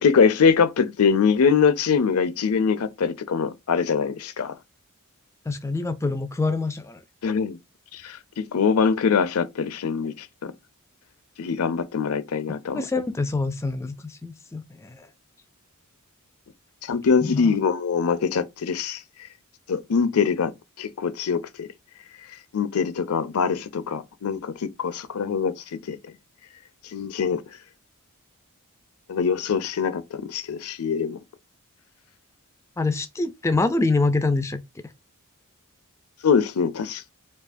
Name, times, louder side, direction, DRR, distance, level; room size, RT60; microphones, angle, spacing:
voice 1, 0.0-4.5 7.2-7.6 7.9-10.5 11.4-12.8 16.8-19.0 19.7-20.5 20.8-21.7 22.5-26.0 26.9-27.4 29.1-31.2 36.2-37.1, left 6 dB, 75° left, 0.5 m, -23 dB
voice 2, 5.5-7.0 12.7-15.1 17.2-17.6 32.8-34.6, left 3 dB, 15° left, 0.3 m, -25 dB
4.6 x 2.4 x 2.5 m
head